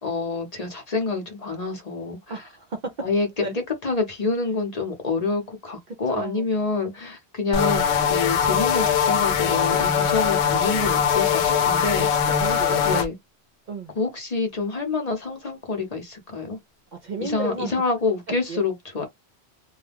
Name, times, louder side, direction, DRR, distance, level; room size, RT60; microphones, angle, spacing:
voice 1, 0.0-2.4 3.0-12.3 12.8-13.1 13.9-16.6 17.2-19.1, left 4 dB, 40° left, 0.8 m, -27 dB
voice 2, 2.3-2.9 3.4-3.5 5.9-6.5 11.5-11.6 12.4-12.8 13.7-13.9 17.0-17.7 18.5-18.6, right 3 dB, 55° right, 0.6 m, -32 dB
sound 1, 7.5-13.1, left 7 dB, 90° left, 0.9 m, -21 dB
2.3 x 2.2 x 3.3 m
omnidirectional pair, 1.1 m